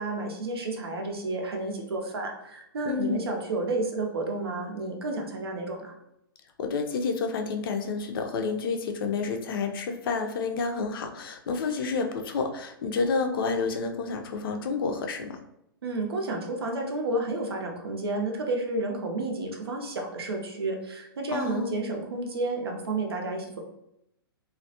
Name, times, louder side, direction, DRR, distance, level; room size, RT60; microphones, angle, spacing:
voice 1, 0.0-5.9 15.8-23.6, right 2 dB, 85° right, 1 dB, 0.6 m, -31 dB
voice 2, 2.8-3.2 6.6-15.4 21.3-21.7, left 4 dB, 65° left, 5 dB, 0.4 m, -29 dB
2.2 x 2.0 x 2.7 m, 0.80 s
hypercardioid pair, 125°, 13 cm